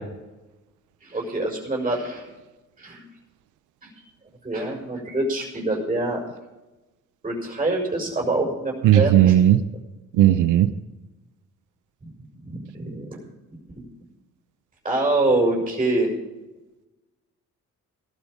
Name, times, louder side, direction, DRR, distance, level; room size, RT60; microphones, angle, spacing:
voice 1, 1.0-2.3 2.8-3.0 3.8-3.9 4.4-6.2 7.2-9.4 12.4-13.2 13.7-13.8 14.8-16.1, right 2 dB, 20° right, -1 dB, 6.1 m, -25 dB
voice 2, 8.8-9.6 10.2-10.7, right 12 dB, 80° right, 12 dB, 0.8 m, -15 dB
17.5 x 12.5 x 5.1 m, 1.1 s
cardioid pair, 90°, 30 cm